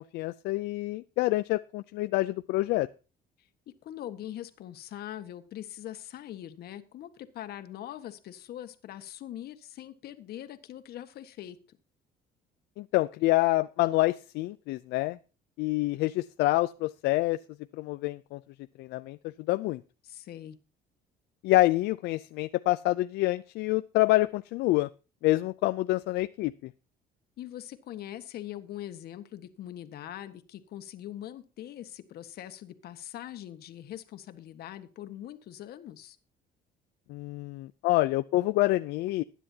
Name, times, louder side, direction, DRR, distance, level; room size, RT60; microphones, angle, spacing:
voice 1, 0.0-2.9 12.8-15.2 15.6-17.4 17.7-18.4 18.8-19.8 21.4-24.9 25.2-26.7 37.1-39.2, left 18 dB, 85° left, 11 dB, 0.5 m, -27 dB
voice 2, 3.8-11.8 20.0-20.6 27.4-36.2, left 12 dB, 70° left, 9 dB, 1.6 m, -42 dB
20.0 x 10.0 x 2.8 m, 0.33 s
cardioid pair, 110°, 17 cm